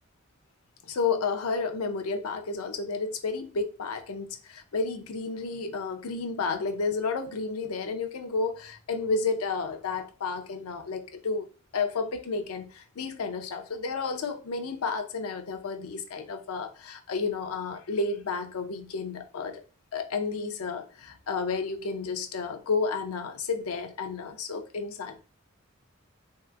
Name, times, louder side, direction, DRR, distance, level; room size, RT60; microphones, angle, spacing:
voice 1, 0.9-11.5 11.7-19.6 19.9-25.2, left 4 dB, 90° left, 0.5 m, -31 dB
3.2 x 2.7 x 2.4 m
head